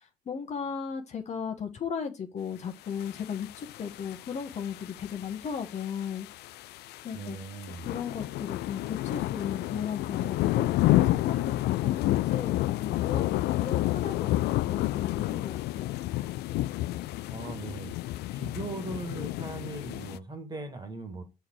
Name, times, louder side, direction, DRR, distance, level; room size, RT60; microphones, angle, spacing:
voice 1, 0.3-6.3 7.0-7.4 7.8-15.9, left 7 dB, 40° left, 1.2 m, -36 dB
sound 1, 3.0-20.2, left 16 dB, 75° left, 0.4 m, -30 dB
voice 2, 7.1-7.8 17.3-17.9 18.3-21.2, right 3 dB, 25° right, 1.9 m, -39 dB
6.5 x 4.6 x 4.6 m
cardioid pair, 110°, 17 cm